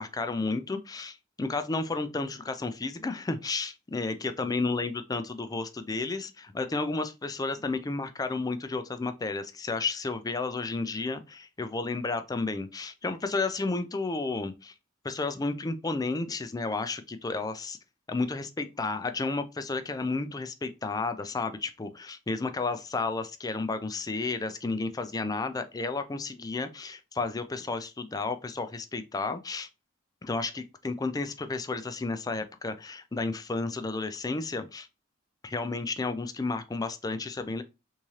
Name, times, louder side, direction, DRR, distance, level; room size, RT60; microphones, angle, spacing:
voice 1, 0.0-14.7 15.0-17.8 18.1-29.7 30.2-34.9 35.4-37.6, left 3 dB, 20° left, 0.4 m, -32 dB
3.6 x 3.1 x 2.7 m
head